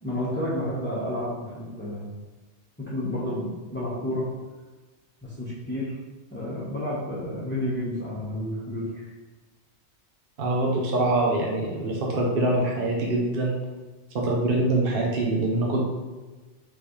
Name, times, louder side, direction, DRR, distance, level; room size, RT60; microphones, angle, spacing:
voice 1, 0.0-2.0 2.8-4.3 5.2-5.9 6.3-9.1, left 1 dB, 10° left, -8 dB, 1.0 m, -30 dB
voice 2, 10.4-13.6 14.1-15.8, right 2 dB, 55° right, -2 dB, 0.9 m, -24 dB
5.1 x 3.3 x 3.1 m, 1.3 s
omnidirectional pair, 1.2 m